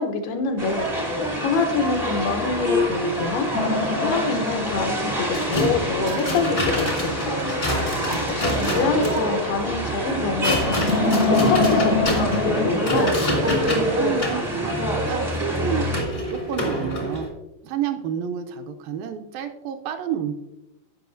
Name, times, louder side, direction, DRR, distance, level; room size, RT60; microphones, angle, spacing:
voice 1, 0.0-3.5 4.0-7.4 8.3-10.9 11.3-13.2, left 4 dB, 85° left, 5 dB, 2.9 m, -26 dB
sound 1, 0.6-16.0, equal, 50° right, 0.3 m, -26 dB
sound 2, 3.5-5.9 10.6-12.7, left 2 dB, 70° left, 0.8 m, -24 dB
sound 3, 5.3-17.3, left 1 dB, 40° left, 0.7 m, -28 dB
voice 2, 13.8-17.3 17.6-20.3, right 9 dB, 80° right, 5 dB, 2.2 m, -30 dB
15.0 x 5.5 x 2.6 m, 0.95 s
omnidirectional pair, 4.4 m